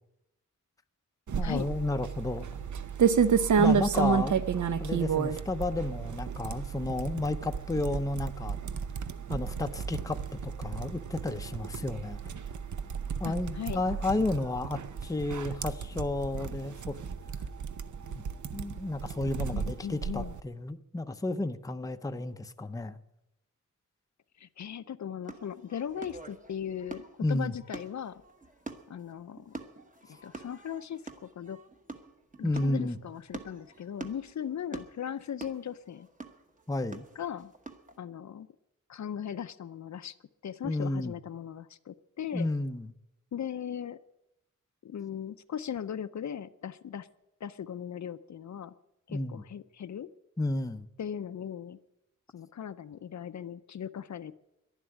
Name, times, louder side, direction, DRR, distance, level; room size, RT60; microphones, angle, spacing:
sound 1, 1.3-20.4, right 6 dB, 65° right, 0.7 m, -31 dB
voice 1, 1.4-2.6 3.6-4.4 4.8-8.6 9.3-12.2 13.2-17.0 18.1-18.2 18.5-23.0 27.2-27.6 32.4-33.0 36.7-37.0 40.6-41.1 42.3-42.9 49.1-49.4 50.4-50.9, left 2 dB, 10° left, 8 dB, 0.5 m, -32 dB
voice 2, 3.6-3.9 13.2-13.8 19.5-20.3 24.4-28.2 28.9-29.6 30.1-31.6 32.4-36.1 37.2-37.5 38.0-38.5 38.9-40.2 40.4-42.5 43.3-44.0 44.8-47.1 47.4-48.7 49.1-50.1 51.0-51.8 52.3-54.4, left 9 dB, 65° left, 12 dB, 0.5 m, -38 dB
sound 2, 25.2-38.0, right 3 dB, 25° right, 1.1 m, -46 dB
11.0 x 11.0 x 9.8 m, 0.89 s
wide cardioid pair, 175°, 31 cm